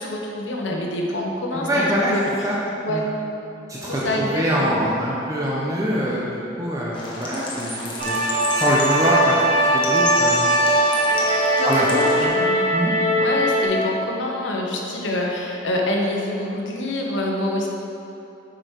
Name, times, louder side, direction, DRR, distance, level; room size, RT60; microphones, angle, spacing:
voice 1, 0.0-2.5 2.8-3.0 3.8-4.7 11.6-12.6 13.2-17.7, left 1 dB, 80° left, -1 dB, 1.1 m, -26 dB
voice 2, 1.5-2.1 2.4-2.6 2.9-3.0 3.7-6.3 6.6-8.2 8.5-9.4 9.6-10.5 11.6-12.3 12.7-12.9, equal, 15° right, -6 dB, 0.8 m, -23 dB
sound 1, 6.9-12.3, left 2 dB, 25° left, 1.0 m, -31 dB
sound 2, 8.0-13.6, right 1 dB, 35° right, 1.3 m, -20 dB
8.0 x 5.2 x 4.6 m, 2.9 s
head